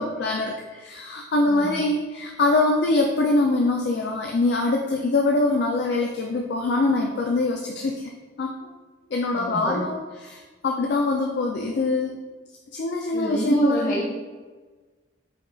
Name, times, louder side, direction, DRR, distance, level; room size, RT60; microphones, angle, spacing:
voice 1, 0.0-8.1 8.4-8.7 9.1-12.2 12.7-14.0, left 2 dB, 60° left, 1 dB, 0.4 m, -23 dB
voice 2, 1.5-1.8 9.3-9.9 13.1-14.1, equal, 45° left, -6 dB, 1.2 m, -27 dB
5.0 x 2.3 x 3.8 m, 1.3 s
head